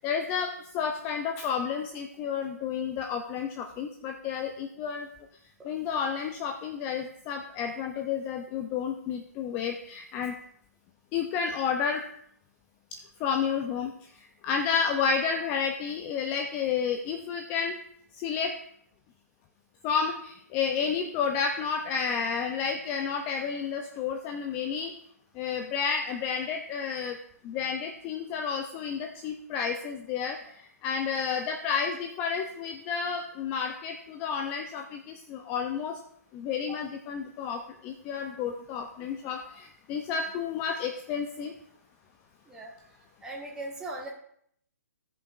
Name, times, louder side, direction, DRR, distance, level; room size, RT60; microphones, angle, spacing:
voice 1, 0.0-5.1 5.6-10.4 11.1-12.0 12.9-17.8 18.1-18.6 19.8-24.9 25.4-27.2 27.4-36.0 36.3-41.5, left 6 dB, 20° left, 5 dB, 0.4 m, -31 dB
voice 2, 42.5-42.9 43.2-44.1, right 1 dB, 10° right, -3 dB, 1.3 m, -39 dB
16.0 x 5.4 x 2.4 m, 0.68 s
hypercardioid pair, 145°, 9 cm